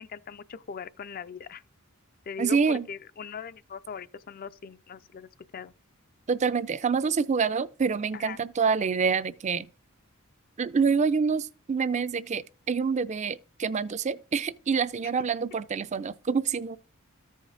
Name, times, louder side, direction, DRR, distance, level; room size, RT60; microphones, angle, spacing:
voice 1, 0.0-1.6 2.3-5.7 8.1-8.4, left 6 dB, 45° left, 0.4 m, -40 dB
voice 2, 2.4-2.9 6.3-9.7 10.6-16.8, right 5 dB, 35° right, 0.4 m, -27 dB
14.0 x 5.1 x 3.9 m
head